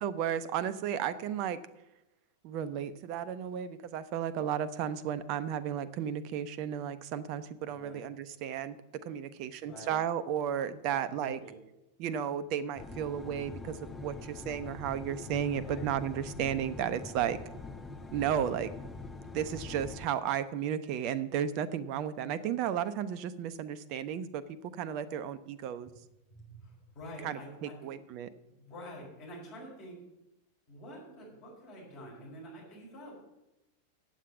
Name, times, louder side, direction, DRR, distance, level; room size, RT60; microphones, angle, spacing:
voice 1, 0.0-1.6 2.4-11.4 12.0-17.4 18.1-18.7 19.3-25.9 27.2-28.3, right 9 dB, 40° right, 13 dB, 0.7 m, -34 dB
voice 2, 7.7-8.0 9.6-10.0 10.9-11.6 15.6-15.9 18.2-18.6 26.3-27.9 28.5-30.0 30.7-33.1, equal, 40° left, -3 dB, 4.8 m, -48 dB
sound 1, 12.8-20.1, left 3 dB, 10° left, 0.7 m, -44 dB
8.2 x 7.6 x 8.2 m, 0.95 s
figure-of-eight pair, 90°, 0 cm